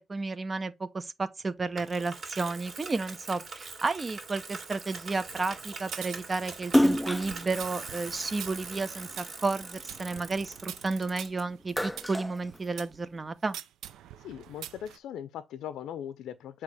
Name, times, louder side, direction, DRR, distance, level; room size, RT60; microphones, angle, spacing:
voice 1, 0.1-13.6, right 3 dB, 30° right, 0.8 m, -32 dB
Bicycle, 1.8-11.4, right 4 dB, 45° right, 2.4 m, -42 dB
sound 1, 5.1-13.0 13.5-15.0, right 11 dB, 80° right, 0.6 m, -46 dB
Splash splatter, 6.6-9.2 9.7-11.1 11.5-13.2, equal, 5° left, 0.4 m, -29 dB
voice 2, 14.2-16.6, left 10 dB, 80° left, 0.5 m, -39 dB
8.2 x 2.9 x 4.9 m
cardioid pair, 90°, 0 cm